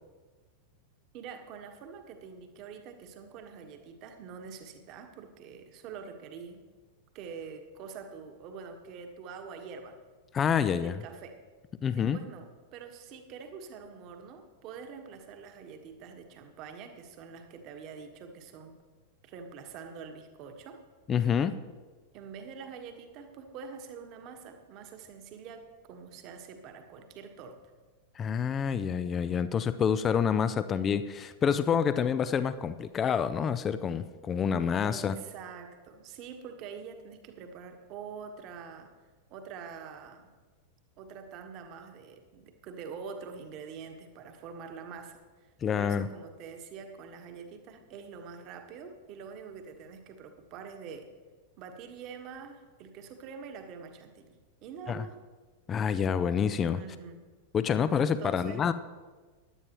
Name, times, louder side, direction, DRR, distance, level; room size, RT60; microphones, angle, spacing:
voice 1, 1.1-6.7 7.1-10.0 10.8-11.4 11.9-18.8 19.2-20.8 22.1-27.6 34.8-38.9 39.3-40.3 41.0-45.2 45.7-51.1 51.6-55.2 56.7-57.2 58.0-58.6, right 6 dB, 40° right, 5 dB, 1.4 m, -45 dB
voice 2, 10.3-11.0 11.8-12.2 21.1-21.6 28.2-35.2 45.6-46.1 54.9-55.1 55.7-56.8 57.5-58.7, left 7 dB, 25° left, 13 dB, 0.5 m, -27 dB
16.5 x 11.0 x 3.0 m, 1.3 s
figure-of-eight pair, 90°, 0 cm